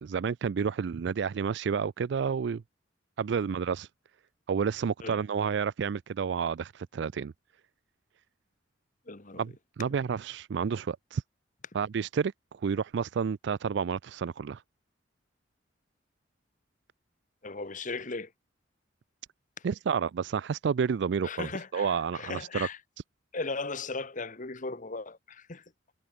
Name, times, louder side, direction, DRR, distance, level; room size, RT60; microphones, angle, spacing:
voice 1, 0.0-2.6 3.2-3.9 4.5-7.3 9.3-11.2 11.7-14.6 19.6-22.7, right 6 dB, 65° right, 0.4 m, -30 dB
voice 2, 9.1-9.4 17.4-18.3 21.2-22.8 23.3-25.6, left 3 dB, 45° left, 1.5 m, -37 dB
head